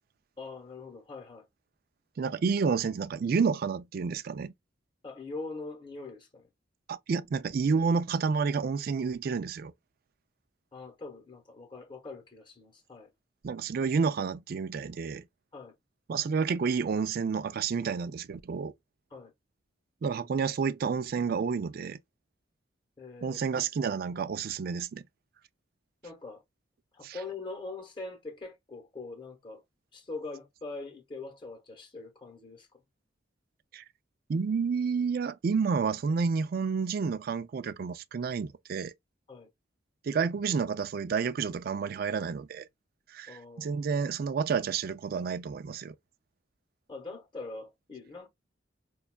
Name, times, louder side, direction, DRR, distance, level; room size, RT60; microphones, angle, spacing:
voice 1, 0.4-1.5 5.0-6.5 10.7-13.1 15.5-15.7 19.1-19.3 23.0-23.4 26.0-26.4 26.9-29.6 29.9-32.7 39.3-39.5 43.3-43.8 46.9-48.3, left 3 dB, 25° left, 0.9 m, -42 dB
voice 2, 2.2-4.5 6.9-9.7 13.4-15.3 16.1-18.7 20.0-22.0 23.2-25.0 27.0-27.2 33.7-33.8 34.3-38.9 40.0-42.7 43.1-45.9, right 5 dB, 50° right, 0.3 m, -30 dB
5.2 x 2.3 x 2.2 m
head